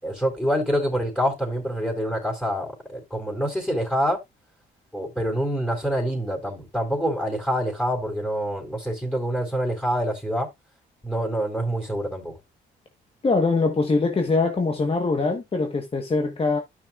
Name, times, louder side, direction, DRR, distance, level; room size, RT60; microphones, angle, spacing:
voice 1, 0.0-4.2 4.9-10.5 11.0-12.3, equal, 5° left, 4.0 m, -26 dB
voice 2, 13.2-16.6, left 3 dB, 30° left, 1.4 m, -23 dB
12.0 x 6.0 x 2.5 m
cardioid pair, 90°, 20 cm